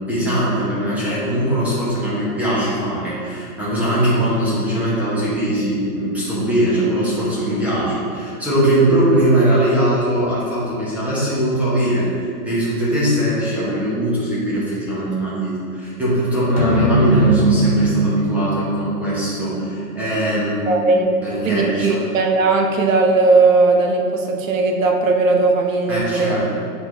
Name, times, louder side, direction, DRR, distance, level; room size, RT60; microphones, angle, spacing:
voice 1, 0.0-22.1 25.9-26.4, right 1 dB, 5° right, -9 dB, 1.1 m, -20 dB
sound 1, 16.6-21.2, right 2 dB, 25° left, 0.4 m, -20 dB
voice 2, 20.7-21.1 21.4-26.4, right 3 dB, 60° right, 3 dB, 0.8 m, -17 dB
7.0 x 4.1 x 3.3 m, 2.4 s
hypercardioid pair, 150°, 45 cm